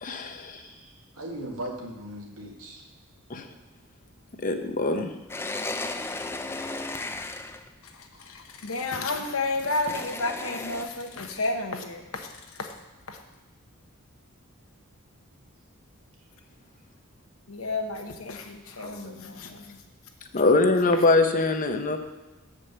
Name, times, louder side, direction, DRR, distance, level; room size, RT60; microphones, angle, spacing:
voice 1, 0.0-0.6 3.3-3.5 4.4-5.1 20.3-22.0, left 2 dB, 40° left, 6 dB, 0.7 m, -23 dB
voice 2, 0.5-2.8 18.8-19.2, right 1 dB, 85° right, 0 dB, 1.7 m, -39 dB
sound 1, 5.3-7.7 9.9-10.8, left 2 dB, 10° left, 0.3 m, -34 dB
voice 3, 7.8-12.7 13.1-13.2 17.5-19.8, left 2 dB, 75° left, 5 dB, 1.0 m, -32 dB
7.3 x 5.0 x 6.6 m, 1.1 s
head